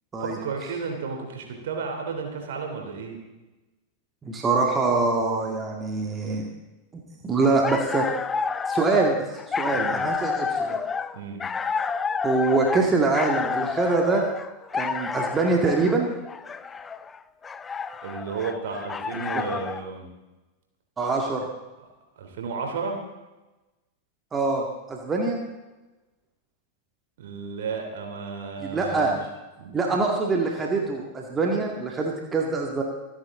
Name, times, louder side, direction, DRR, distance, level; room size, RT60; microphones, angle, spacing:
voice 1, 0.2-3.2 9.7-10.0 11.1-11.4 18.0-20.1 22.2-23.0 27.2-29.2 29.6-29.7, right 5 dB, 55° right, 2 dB, 3.3 m, -33 dB
voice 2, 4.2-6.5 7.2-8.1 8.7-9.2 9.5-10.8 12.2-14.2 14.7-16.1 21.0-21.5 24.3-25.4 28.6-29.1 29.7-32.8, right 3 dB, 20° right, 1 dB, 2.2 m, -24 dB
sound 1, 7.4-19.9, left 5 dB, 20° left, 0.5 m, -30 dB
26.5 x 10.0 x 3.9 m, 1.1 s
figure-of-eight pair, 90°, 0 cm